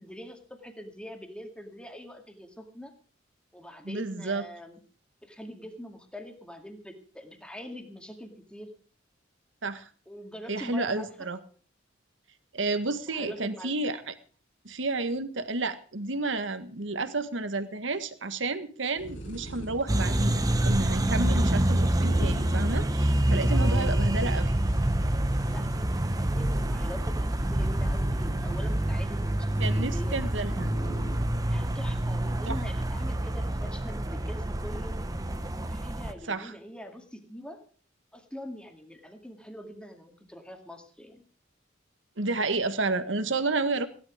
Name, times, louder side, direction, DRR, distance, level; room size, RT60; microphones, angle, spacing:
voice 1, 0.0-2.9 3.5-4.8 5.2-8.7 10.1-11.1 13.1-13.7 23.5-24.4 25.2-26.0 26.3-30.2 31.4-35.0 35.6-37.6 38.1-41.2, equal, 5° left, 4 dB, 2.1 m, -43 dB
voice 2, 3.8-4.5 9.6-9.9 10.5-11.4 12.5-14.1 14.6-24.6 29.6-30.7 32.5-32.6 36.3-36.5 42.2-43.9, right 3 dB, 80° right, 10 dB, 1.6 m, -31 dB
sound 1, 19.0-31.2, right 1 dB, 75° left, 5.0 m, -40 dB
sound 2, 19.9-36.1, right 1 dB, 20° right, 0.9 m, -27 dB
16.0 x 11.5 x 5.0 m, 0.41 s
head